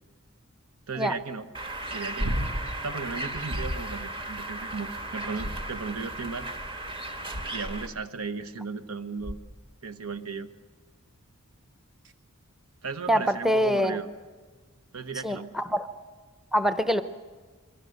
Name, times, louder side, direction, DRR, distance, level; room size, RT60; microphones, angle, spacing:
voice 1, 0.9-1.5 1.9-2.4 2.8-6.5 7.5-9.4 9.8-10.5 12.8-14.1 14.9-15.5, right 4 dB, 80° right, 10 dB, 1.2 m, -35 dB
Bird, 1.5-7.9, right 2 dB, 25° right, 1.5 m, -36 dB
sound 1, 2.2-2.8 3.5-4.0 5.3-6.1 7.3-7.8 9.2-9.7 12.0-12.1, equal, 60° right, 1.3 m, -33 dB
voice 2, 13.1-14.0 15.2-15.9 16.5-17.0, equal, ahead, 11 dB, 0.7 m, -24 dB
27.0 x 22.5 x 6.6 m, 1.4 s
head